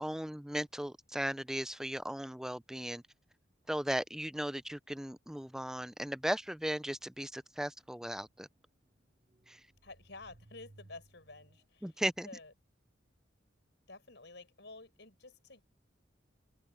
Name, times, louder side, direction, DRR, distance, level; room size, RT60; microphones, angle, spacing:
voice 1, 0.0-3.0 3.7-8.5 9.5-9.6 11.8-12.3, equal, 5° right, 0.4 m, -37 dB
sound 1, 4.6-11.7, right 2 dB, 30° right, 1.1 m, -63 dB
voice 2, 9.8-11.9 12.2-12.5 13.9-15.6, left 3 dB, 65° left, 6.5 m, -51 dB
open air
head